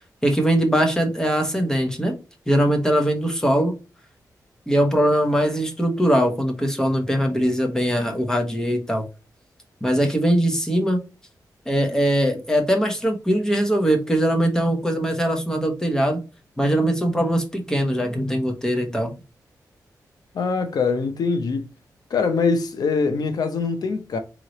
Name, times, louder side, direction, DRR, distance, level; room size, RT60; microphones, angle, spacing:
voice 1, 0.2-2.2 2.5-3.7 4.7-9.0 9.8-11.0 11.7-16.2 16.6-19.1, equal, 10° left, 1.0 m, -21 dB
voice 2, 20.3-21.7 22.1-24.2, left 4 dB, 75° left, 0.7 m, -23 dB
3.7 x 3.1 x 3.0 m
wide cardioid pair, 105°, 7 cm